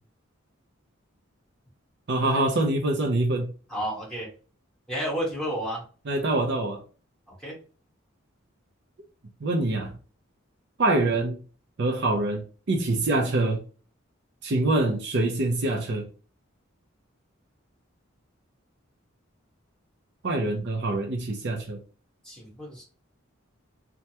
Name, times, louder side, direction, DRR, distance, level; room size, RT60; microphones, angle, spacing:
voice 1, 2.1-3.5 6.1-6.8 9.4-9.9 10.8-11.4 11.8-13.6 14.4-16.1 20.2-21.8, right 2 dB, 55° right, 0.5 m, -25 dB
voice 2, 3.7-4.3 4.9-5.8 7.4-7.5 22.2-22.8, equal, 5° left, 1.3 m, -31 dB
3.3 x 2.2 x 2.8 m
head